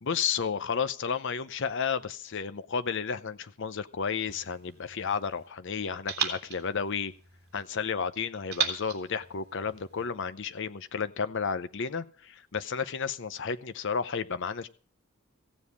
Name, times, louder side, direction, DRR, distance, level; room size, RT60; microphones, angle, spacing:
voice 1, 0.0-7.1 7.5-14.7, left 6 dB, 60° left, 13 dB, 0.7 m, -32 dB
sound 1, 4.3-5.5 6.1-7.7 8.5-10.1, right 7 dB, 50° right, 2.7 m, -36 dB
16.0 x 7.4 x 8.2 m, 0.42 s
head